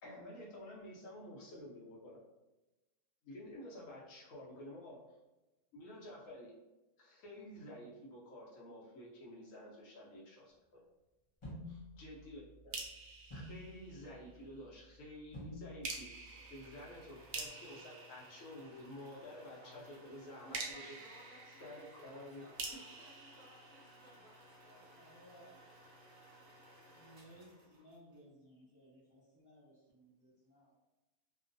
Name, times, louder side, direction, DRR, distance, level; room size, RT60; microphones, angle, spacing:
voice 1, 0.0-2.2 3.2-5.0 5.7-6.5 7.0-10.8 11.7-12.8 13.3-16.1 16.5-20.9 21.6-22.4, left 1 dB, 65° left, -5 dB, 1.0 m, -51 dB
sound 1, 11.4-17.5, left 1 dB, 40° left, 0.4 m, -53 dB
sound 2, 12.7-14.4 15.8-19.2 20.5-24.4, right 3 dB, 85° right, 1.1 m, -48 dB
sound 3, 15.9-28.2, equal, 45° right, 0.8 m, -60 dB
voice 2, 19.6-20.0 20.6-24.9 25.3-25.4, right 1 dB, 65° right, -4 dB, 1.1 m, -61 dB
voice 3, 24.9-25.5 26.8-30.8, equal, 20° right, -9 dB, 0.5 m, -61 dB
2.9 x 2.1 x 2.5 m, 1.0 s
omnidirectional pair, 1.6 m